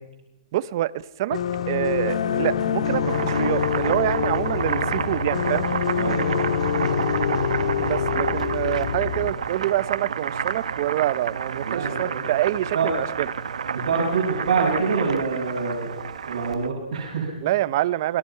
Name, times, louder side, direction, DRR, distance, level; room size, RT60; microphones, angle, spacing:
voice 1, 0.5-0.9 1.2-1.4 1.7-5.6 7.8-13.3 17.4-18.2, right 14 dB, 35° right, 17 dB, 0.7 m, -26 dB
sound 1, 1.3-9.3, left 8 dB, 75° left, 1.9 m, -25 dB
Boiling, 2.9-16.7, right 7 dB, 85° right, 1.2 m, -30 dB
voice 2, 5.9-6.6 11.6-12.3 12.7-12.9 13.7-15.9 16.2-17.3, right 5 dB, 65° right, -4 dB, 6.9 m, -25 dB
29.0 x 21.0 x 5.8 m, 0.98 s
hypercardioid pair, 170°, 4 cm